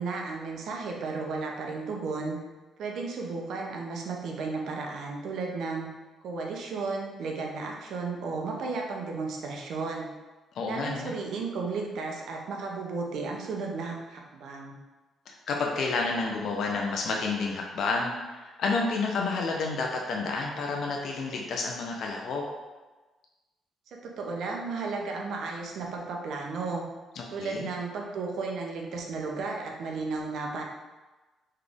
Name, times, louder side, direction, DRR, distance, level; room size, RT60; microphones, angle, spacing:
voice 1, 0.0-2.4 2.8-5.9 6.2-10.1 10.7-14.8 23.9-26.8 27.3-30.6, right 4 dB, 75° right, 0 dB, 0.7 m, -34 dB
voice 2, 10.5-11.1 15.3-22.4 27.2-27.7, left 3 dB, 70° left, 0 dB, 0.6 m, -30 dB
3.9 x 3.2 x 3.5 m, 1.2 s
cardioid pair, 90°, 0 cm